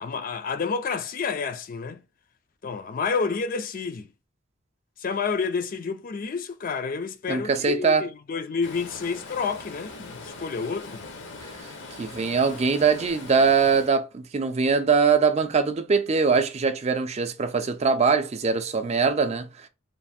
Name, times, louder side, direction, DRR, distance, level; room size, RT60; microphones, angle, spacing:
voice 1, 0.0-2.0 2.6-4.1 5.0-11.0, left 5 dB, 45° left, 0.4 m, -29 dB
voice 2, 7.3-8.0 12.0-19.7, right 5 dB, 35° right, 0.4 m, -22 dB
Stream, 8.6-13.9, left 3 dB, 65° left, 0.8 m, -41 dB
3.2 x 2.5 x 4.1 m
head